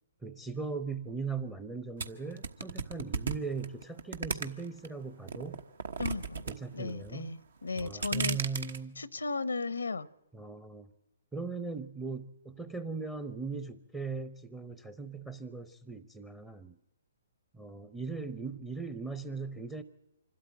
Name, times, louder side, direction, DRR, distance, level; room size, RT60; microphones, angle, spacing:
voice 1, 0.2-5.6 6.5-7.3 7.8-9.0 10.3-10.9 11.3-16.8 17.5-19.8, right 4 dB, 10° right, 13 dB, 0.7 m, -39 dB
sound 1, 2.0-4.9 5.3-6.5 6.8-7.3 7.7-8.8, right 5 dB, 70° right, 1.2 m, -35 dB
voice 2, 6.0-8.4 9.0-10.1, left 3 dB, 90° left, 19 dB, 0.7 m, -35 dB
25.5 x 12.5 x 8.9 m, 0.93 s
hypercardioid pair, 135°, 0 cm